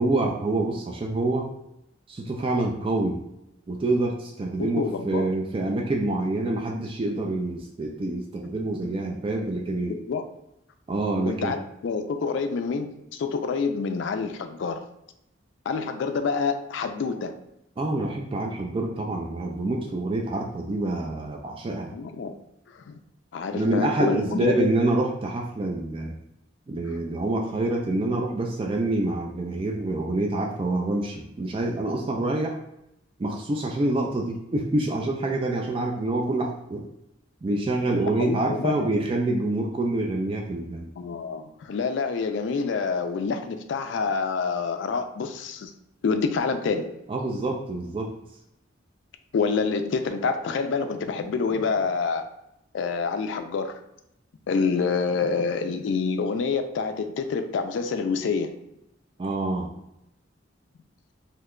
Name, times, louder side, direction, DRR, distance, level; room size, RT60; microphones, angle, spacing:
voice 1, 0.0-1.5 2.1-3.2 3.7-9.9 10.9-11.5 17.8-21.9 23.5-26.1 26.7-32.6 33.2-36.8 37.4-40.9 47.1-48.1 59.2-59.7, right 2 dB, 30° right, 0 dB, 0.3 m, -26 dB
voice 2, 4.6-5.3 8.8-8.9 10.1-10.2 11.3-14.8 15.7-17.3 21.9-22.3 22.7-23.0 23.3-24.7 26.9-27.0 38.2-39.0 41.0-45.7 46.0-47.0 49.3-52.3 52.7-53.8 54.5-58.5, left 5 dB, 65° left, 7 dB, 0.3 m, -27 dB
2.8 x 2.2 x 3.6 m, 0.84 s
head